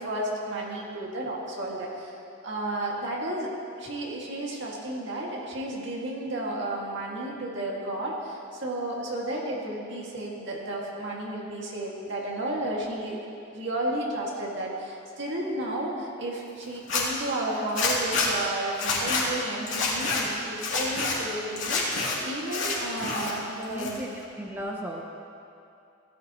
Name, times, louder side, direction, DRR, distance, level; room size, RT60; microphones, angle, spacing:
voice 1, 0.0-2.2 2.4-3.5 3.8-13.2 13.5-24.0, right 1 dB, 65° right, -3 dB, 2.1 m, -32 dB
Zipper (clothing), 16.7-17.0 17.7-18.3 18.7-19.2 19.7-20.2 20.6-21.1 21.6-22.1 22.5-23.3 23.6-24.2, left 4 dB, 70° left, 2.8 m, -27 dB
voice 2, 23.7-24.1 24.4-25.0, equal, 10° right, -1 dB, 0.7 m, -35 dB
16.5 x 12.5 x 3.0 m, 2.6 s
head